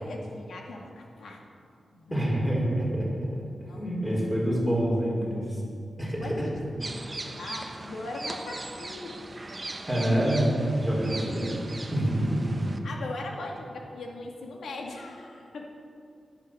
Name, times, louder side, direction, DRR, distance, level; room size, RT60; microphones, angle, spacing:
voice 1, 0.0-1.4 1.9-2.3 3.7-4.3 6.0-9.2 12.8-15.7, left 2 dB, 90° left, 1 dB, 2.0 m, -40 dB
voice 2, 2.1-3.1 3.7-5.6 6.0-6.3 9.9-11.6 11.9-12.6, right 1 dB, ahead, -5 dB, 5.0 m, -26 dB
sound 1, 6.8-12.8, right 2 dB, 25° right, 1.1 m, -40 dB
16.0 x 12.5 x 6.4 m, 2.4 s
wide cardioid pair, 130°, 0 cm